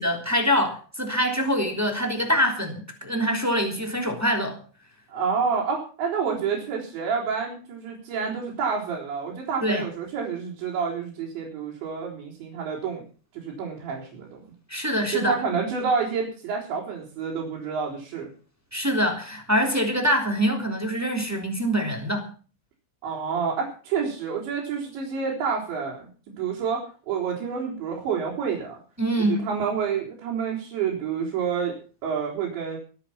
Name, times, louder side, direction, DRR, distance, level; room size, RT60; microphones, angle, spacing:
voice 1, 0.0-4.6 9.6-9.8 14.7-15.4 18.7-22.3 29.0-29.4, equal, 5° right, 3 dB, 2.5 m, -24 dB
voice 2, 5.1-13.0 13.3-14.4 15.1-18.3 23.0-26.1 26.4-28.8 29.2-31.8 32.0-32.8, right 6 dB, 90° right, -3 dB, 6.6 m, -28 dB
23.5 x 8.8 x 5.9 m, 0.39 s
omnidirectional pair, 5.0 m